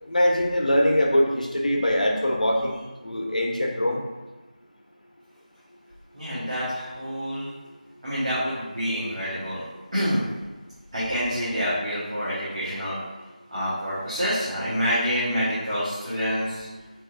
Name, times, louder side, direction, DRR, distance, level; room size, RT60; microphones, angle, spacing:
voice 1, 0.0-4.0, equal, 65° left, 0 dB, 0.7 m, -23 dB
voice 2, 6.1-7.5 8.0-9.6 9.9-10.2 10.9-13.0 13.5-16.7, equal, 45° right, -11 dB, 1.3 m, -27 dB
4.1 x 3.1 x 2.4 m, 1.2 s
figure-of-eight pair, 175°, 4 cm